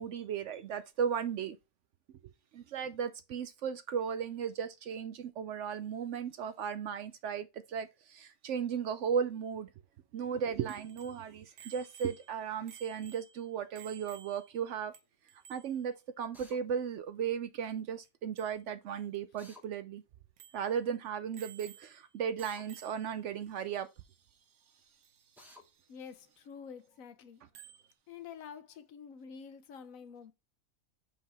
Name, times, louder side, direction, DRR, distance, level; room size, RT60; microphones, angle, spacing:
voice 1, 0.0-1.6 2.5-9.7 10.1-14.9 15.5-20.0 20.5-23.9, right 7 dB, 65° right, 0.8 m, -36 dB
Bicycle bell, 10.7-14.6 14.9-15.0 15.3-15.8 18.0-18.1 18.4-18.6 19.1-19.2 19.6-19.7 20.4-20.7 21.3-22.1 22.4-23.2 25.0-25.1 27.5-27.9, right 9 dB, 90° right, 1.3 m, -54 dB
Drill, 16.3-16.6 19.4-19.6 22.4-22.7 25.4-25.6, left 2 dB, ahead, 1.3 m, -54 dB
voice 2, 25.9-27.4 28.1-30.3, left 7 dB, 70° left, 1.1 m, -48 dB
5.6 x 5.4 x 3.4 m
omnidirectional pair, 1.5 m